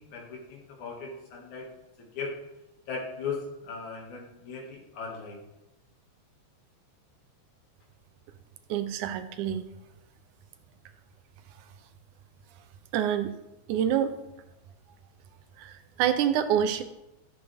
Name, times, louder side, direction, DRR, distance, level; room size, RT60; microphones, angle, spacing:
voice 1, 0.0-1.7 2.1-2.3 2.9-5.4, left 4 dB, 80° left, -1 dB, 3.4 m, -37 dB
voice 2, 8.7-9.6 12.9-13.3 13.7-14.2 15.6-16.8, right 9 dB, 90° right, 9 dB, 2.2 m, -26 dB
13.5 x 7.4 x 3.5 m, 0.95 s
omnidirectional pair, 3.4 m